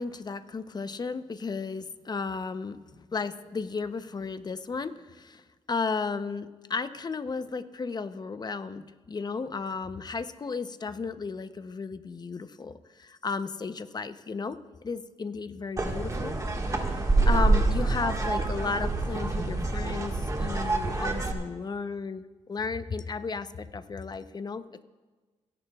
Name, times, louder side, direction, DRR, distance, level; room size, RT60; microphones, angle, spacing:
voice 1, 0.0-5.4 5.7-14.6 14.8-16.3 16.6-24.8, left 4 dB, 35° left, 11 dB, 0.7 m, -34 dB
sound 1, 15.8-21.3, right 2 dB, 30° right, 1.6 m, -26 dB
29.0 x 11.0 x 2.4 m, 1.3 s
cardioid pair, 80°, 12 cm